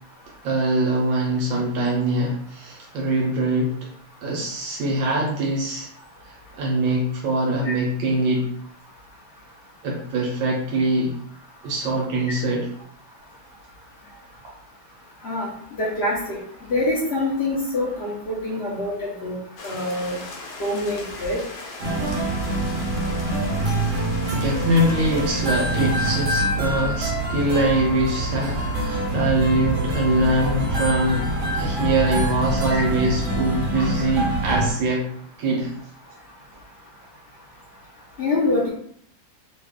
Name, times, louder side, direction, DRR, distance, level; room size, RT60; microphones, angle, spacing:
voice 1, 0.4-3.9 4.2-5.9 6.2-8.5 9.8-11.1 11.6-12.7 22.8-22.9 23.9-24.0 24.3-31.3 31.5-35.1 35.4-35.7, right 1 dB, 75° right, -2 dB, 1.3 m, -23 dB
voice 2, 15.8-16.4 16.7-19.4 19.6-20.2 20.6-21.4 32.7-32.9 38.2-38.7, left 2 dB, 85° left, -6 dB, 0.5 m, -25 dB
sound 1, 19.6-26.3, left 3 dB, 65° left, 1.1 m, -39 dB
sound 2, 21.8-34.7, right 1 dB, 50° right, 1.2 m, -25 dB
3.2 x 2.4 x 3.4 m, 0.65 s
omnidirectional pair, 2.2 m